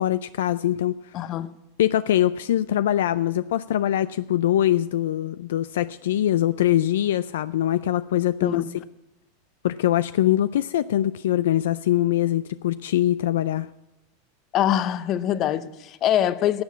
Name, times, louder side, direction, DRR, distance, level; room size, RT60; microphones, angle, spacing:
voice 1, 0.0-1.3 1.8-8.6 9.6-13.7, left 12 dB, 75° left, 15 dB, 0.3 m, -23 dB
voice 2, 1.1-1.5 8.4-8.6 14.5-16.6, left 11 dB, 45° left, 16 dB, 0.7 m, -23 dB
12.0 x 7.3 x 8.4 m, 1.0 s
hypercardioid pair, 105°, 0 cm